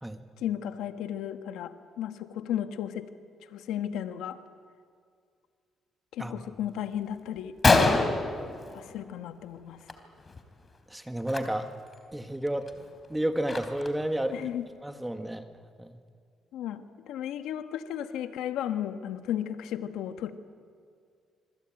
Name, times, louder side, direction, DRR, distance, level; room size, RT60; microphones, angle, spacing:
voice 1, 0.4-3.1 3.5-4.4 6.1-7.6 8.7-9.8 14.3-14.7 16.5-20.3, left 10 dB, 90° left, 9 dB, 1.3 m, -34 dB
Gunshot gunfire, 7.0-7.1 7.4-7.5 7.6-9.3 9.6-9.9 10.2-10.4 11.2-11.4 11.9-12.0 12.5-14.1, left 3 dB, 30° left, 3.4 m, -26 dB
voice 2, 10.9-11.7 12.1-12.7 13.1-14.4 14.8-15.5 15.8-16.0, right 1 dB, 10° right, 7 dB, 1.7 m, -31 dB
27.0 x 21.5 x 9.0 m, 2.2 s
cardioid pair, 90°, 0 cm